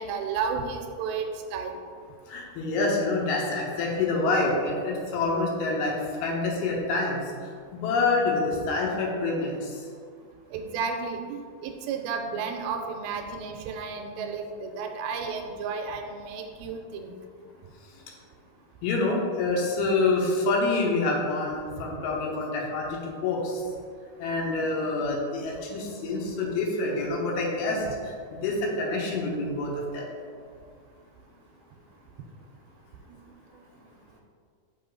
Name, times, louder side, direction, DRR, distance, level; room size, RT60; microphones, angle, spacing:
voice 1, 0.0-1.8 10.5-17.1 33.5-33.6, right 5 dB, 85° right, 4 dB, 2.4 m, -32 dB
voice 2, 2.3-5.9 6.2-7.2 7.7-9.8 18.8-23.6 24.2-30.1, left 3 dB, 90° left, -2 dB, 2.9 m, -27 dB
5.9 x 5.6 x 3.8 m, 2.1 s
omnidirectional pair, 4.4 m